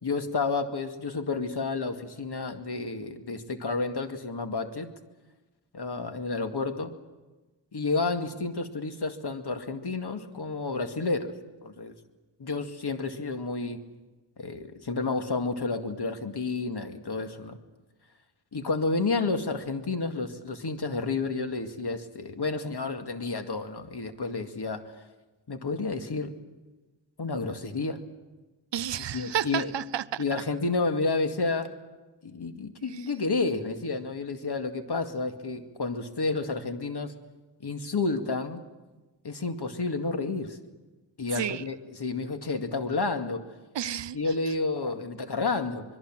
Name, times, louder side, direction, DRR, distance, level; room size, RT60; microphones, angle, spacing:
voice 1, 0.0-4.9 5.7-6.9 7.7-11.9 12.4-13.8 14.4-17.6 18.5-24.8 25.5-26.3 27.2-28.0 29.1-29.7 30.2-31.7 32.2-37.1 37.6-38.6 39.2-40.6 41.2-43.4 44.1-45.8, left 3 dB, 60° left, 2.2 m, -30 dB
voice 2, 28.7-30.2 32.9-33.1 41.3-41.7 43.7-44.5, right 10 dB, 70° right, 0.7 m, -32 dB
25.5 x 22.0 x 7.6 m
cardioid pair, 50°, 45 cm